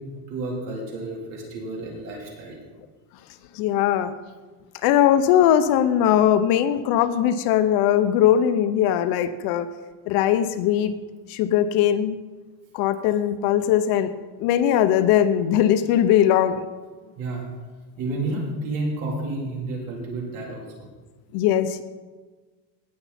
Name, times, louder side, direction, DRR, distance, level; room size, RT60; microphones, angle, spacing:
voice 1, 0.0-2.6 17.2-17.4 18.0-20.9, right 2 dB, 50° right, -2 dB, 3.6 m, -31 dB
voice 2, 3.6-4.1 4.8-9.7 10.1-10.9 11.3-12.2 12.7-14.1 14.4-16.6 21.3-21.8, left 10 dB, 60° left, 11 dB, 0.7 m, -20 dB
18.5 x 7.0 x 4.2 m, 1.3 s
cardioid pair, 170°, 41 cm